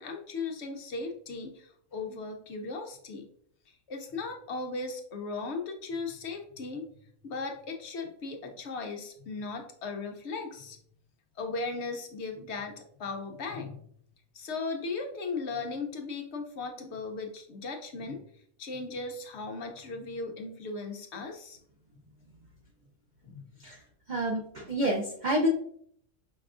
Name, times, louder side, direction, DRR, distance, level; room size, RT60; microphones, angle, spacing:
voice 1, 0.0-3.3 3.7-6.8 7.2-10.8 11.4-13.8 14.3-18.2 18.6-21.6 23.2-23.5, left 3 dB, 60° left, 3 dB, 0.8 m, -37 dB
voice 2, 24.1-25.5, right 1 dB, 75° right, 0 dB, 0.4 m, -28 dB
5.4 x 3.4 x 2.4 m, 0.65 s
omnidirectional pair, 1.5 m